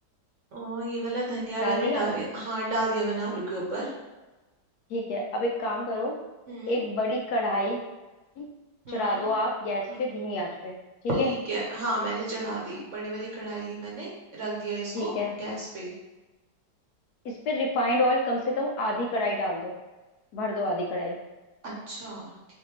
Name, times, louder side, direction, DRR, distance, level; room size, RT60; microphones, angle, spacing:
voice 1, 0.5-3.9 6.5-6.8 8.8-9.3 9.9-10.0 11.1-15.9 21.6-22.3, right 2 dB, 50° right, -4 dB, 1.1 m, -32 dB
voice 2, 1.6-2.0 4.9-6.2 6.7-7.8 8.4-8.5 8.9-10.7 11.2-11.3 14.9-15.3 17.2-19.7 20.3-21.2, left 1 dB, 70° left, 0 dB, 1.0 m, -28 dB
6.1 x 2.6 x 3.0 m, 1.1 s
omnidirectional pair, 1.9 m